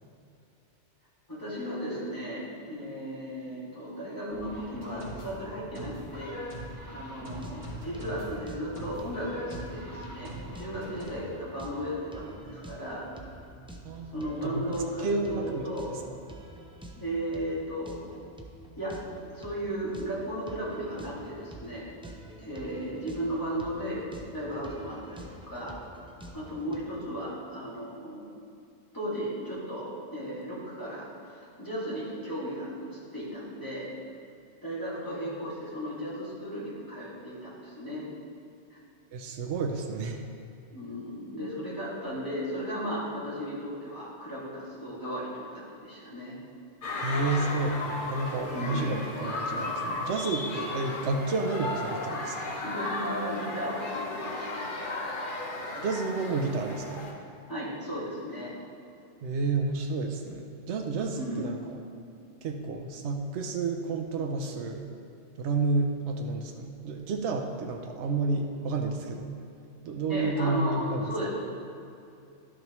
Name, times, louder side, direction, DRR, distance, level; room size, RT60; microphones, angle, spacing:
voice 1, 1.3-6.4 6.9-13.1 14.1-15.9 17.0-18.1 18.8-19.0 19.3-21.9 22.4-25.8 26.3-28.3 28.9-33.9 34.6-38.0 40.7-46.3 48.5-48.9 52.6-54.7 57.5-58.5 61.2-61.5 70.1-71.3, equal, 15° left, -9 dB, 2.2 m, -35 dB
sound 1, 4.3-11.0, equal, 55° right, 2.5 m, -42 dB
sound 2, 7.2-26.8, right 1 dB, 10° right, 0.3 m, -48 dB
voice 2, 13.8-14.7 15.0-16.0 39.1-40.2 47.0-52.6 55.7-57.1 59.2-61.6 62.4-64.9 65.4-69.4 69.8-71.1, right 3 dB, 75° right, 3 dB, 1.0 m, -30 dB
sound 3, 46.8-57.1, left 2 dB, 50° left, 1.0 m, -34 dB
11.5 x 6.5 x 3.1 m, 2.6 s
omnidirectional pair, 1.2 m